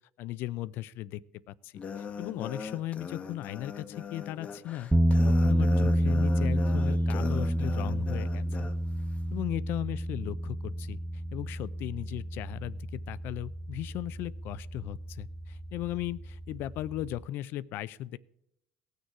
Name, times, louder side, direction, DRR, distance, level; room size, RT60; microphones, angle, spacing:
voice 1, 0.2-1.2 1.5-4.9 5.2-8.7 9.3-11.0 11.3-18.2, left 14 dB, 70° left, 19 dB, 0.4 m, -37 dB
sound 1, 1.7-8.7, left 5 dB, 35° left, 0.9 m, -40 dB
sound 2, 4.9-17.2, equal, 5° right, 0.4 m, -29 dB
17.5 x 6.6 x 4.7 m, 0.78 s
cardioid pair, 115°, 4 cm